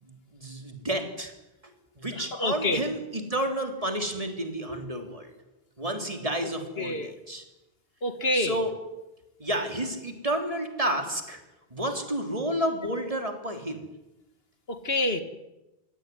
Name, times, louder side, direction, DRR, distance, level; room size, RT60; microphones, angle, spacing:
voice 1, 0.0-1.3 1.6-5.3 5.8-7.4 8.3-8.7 9.4-11.4 11.7-13.9, right 1 dB, 35° right, 5 dB, 3.7 m, -31 dB
voice 2, 2.4-2.8 6.8-7.1 8.0-8.5 14.7-15.2, left 2 dB, 75° left, 9 dB, 2.1 m, -27 dB
25.0 x 17.5 x 9.5 m, 0.99 s
omnidirectional pair, 1.0 m